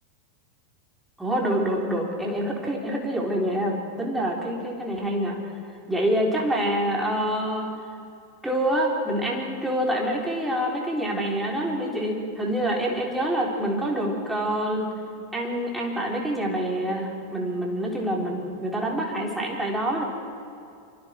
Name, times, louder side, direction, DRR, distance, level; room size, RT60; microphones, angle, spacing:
voice 1, 1.2-5.4 5.9-7.7 8.4-14.9 15.3-20.0, right 1 dB, 5° right, -2 dB, 3.7 m, -26 dB
25.5 x 25.0 x 4.5 m, 2.4 s
figure-of-eight pair, 90°, 0 cm